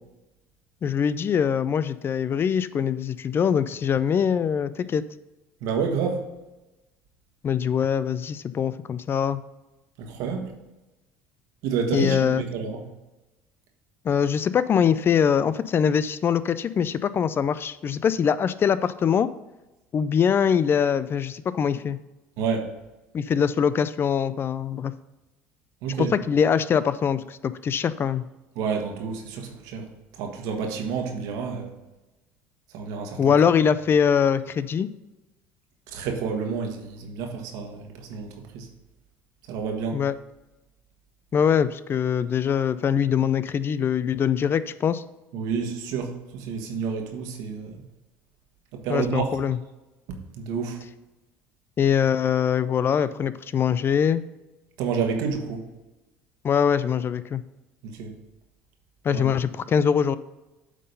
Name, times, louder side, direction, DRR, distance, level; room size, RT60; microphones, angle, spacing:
voice 1, 0.8-5.0 7.4-9.4 11.9-12.4 14.0-19.3 19.9-22.0 23.1-24.9 26.0-28.2 33.2-34.9 39.9-40.1 41.3-45.0 48.9-49.6 51.8-54.2 56.4-57.4 59.0-60.2, left 7 dB, 35° left, 15 dB, 0.4 m, -23 dB
voice 2, 5.6-6.2 10.0-10.5 11.6-12.8 22.4-22.7 25.8-26.1 28.5-29.8 30.1-31.7 32.7-33.2 35.9-38.7 39.5-40.0 45.3-47.8 48.7-49.3 50.1-50.8 54.8-55.6 57.8-58.2 59.1-59.2, right 6 dB, 70° right, 3 dB, 1.5 m, -29 dB
8.3 x 3.8 x 5.3 m, 1.0 s
supercardioid pair, 90°, 6 cm